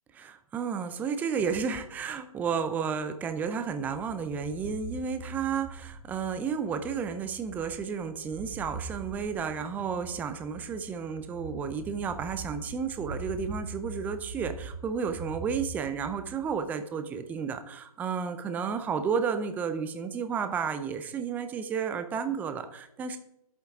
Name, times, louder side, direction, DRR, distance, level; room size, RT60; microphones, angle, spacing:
voice 1, 0.1-23.2, right 6 dB, 10° right, 9 dB, 0.5 m, -32 dB
sound 1, 3.8-16.7, right 3 dB, 25° right, 1.1 m, -43 dB
11.0 x 8.2 x 3.6 m, 0.80 s
hypercardioid pair, 145°, 19 cm